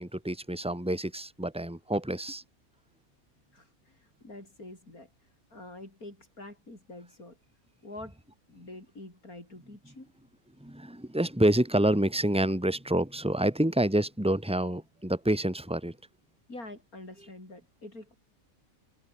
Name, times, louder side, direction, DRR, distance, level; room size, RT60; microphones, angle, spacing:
voice 1, 0.0-2.4 10.6-16.0, right 1 dB, 5° right, 3.5 m, -27 dB
voice 2, 3.5-5.1 5.5-7.4 7.8-8.2 8.5-10.1 16.5-18.1, left 2 dB, 80° left, 8.2 m, -46 dB
omnidirectional pair, 1.5 m